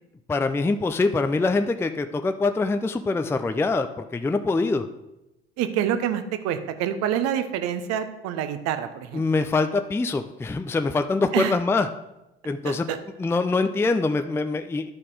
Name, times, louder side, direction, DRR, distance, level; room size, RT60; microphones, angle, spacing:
voice 1, 0.3-3.9 4.1-4.9 9.1-11.9 12.4-12.9 13.2-14.9, left 3 dB, 10° left, 8 dB, 0.5 m, -24 dB
voice 2, 5.6-9.2 11.3-11.5 12.6-13.0, right 10 dB, 55° right, 9 dB, 1.0 m, -27 dB
11.5 x 4.2 x 4.9 m, 0.93 s
figure-of-eight pair, 65°, 30 cm